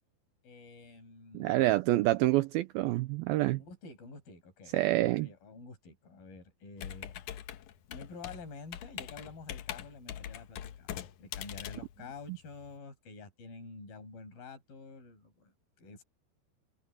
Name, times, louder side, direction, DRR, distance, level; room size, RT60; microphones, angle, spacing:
voice 1, 0.4-1.7 3.6-7.1 7.9-10.9 11.2-15.5 15.8-16.0, left 4 dB, 55° left, 8.0 m, -49 dB
voice 2, 1.3-3.6 4.7-5.3, right 17 dB, 85° right, 2.2 m, -27 dB
Computer keyboard, 6.8-12.7, left 11 dB, 75° left, 1.8 m, -43 dB
omnidirectional pair, 4.9 m